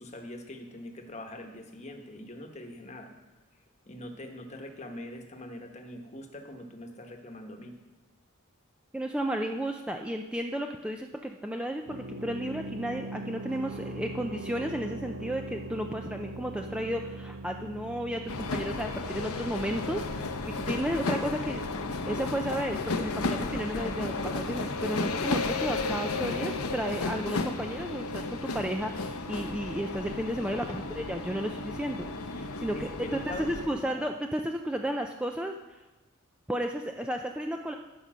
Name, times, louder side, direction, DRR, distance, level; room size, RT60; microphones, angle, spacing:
voice 1, 0.0-3.1 3.9-7.8 30.6-30.9 32.7-34.1, left 1 dB, 30° left, 4 dB, 1.1 m, -43 dB
voice 2, 8.9-20.3 20.6-21.6 22.1-35.5 36.5-37.7, equal, 5° right, 3 dB, 0.3 m, -33 dB
sound 1, 11.9-27.5, right 2 dB, 65° right, 0.9 m, -43 dB
sound 2, 18.3-33.7, left 3 dB, 85° left, 0.8 m, -33 dB
13.0 x 5.3 x 6.2 m, 1.1 s
head